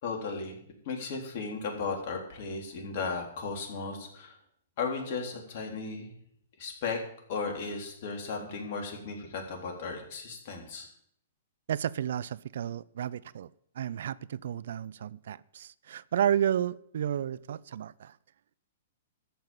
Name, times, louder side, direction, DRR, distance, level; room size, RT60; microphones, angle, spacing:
voice 1, 0.0-4.3 4.8-6.2 6.6-7.0 7.3-10.9, left 4 dB, 50° left, 3.9 m, -35 dB
voice 2, 11.7-13.5 13.8-18.2, right 9 dB, 65° right, 0.4 m, -32 dB
13.5 x 5.7 x 8.9 m
hypercardioid pair, 115°, 0 cm